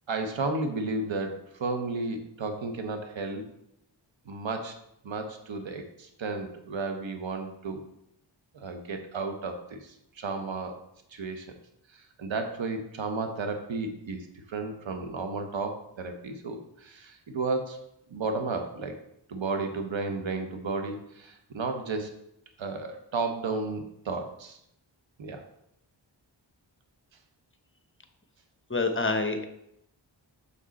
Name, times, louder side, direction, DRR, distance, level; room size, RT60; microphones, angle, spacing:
voice 1, 0.1-3.4 4.3-4.8 5.0-7.9 8.5-10.8 11.1-11.5 11.9-17.8 18.1-19.0 19.3-22.2 22.6-24.6 25.2-25.4, right 3 dB, 70° right, 5 dB, 1.0 m, -33 dB
voice 2, 28.7-29.5, left 3 dB, 25° left, 6 dB, 0.9 m, -26 dB
7.0 x 5.1 x 4.1 m, 0.77 s
cardioid pair, 50°, 47 cm